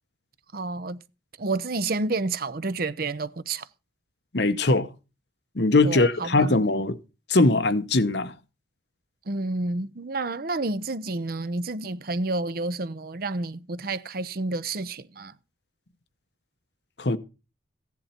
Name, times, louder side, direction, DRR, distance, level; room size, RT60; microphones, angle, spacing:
voice 1, 0.5-1.0 1.4-3.7 5.8-6.5 9.3-15.3, right 3 dB, 50° right, 0.7 m, -30 dB
voice 2, 4.3-4.9 5.6-7.0 7.3-8.3 17.0-17.2, left 2 dB, 60° left, 1.0 m, -21 dB
15.5 x 10.5 x 4.4 m
head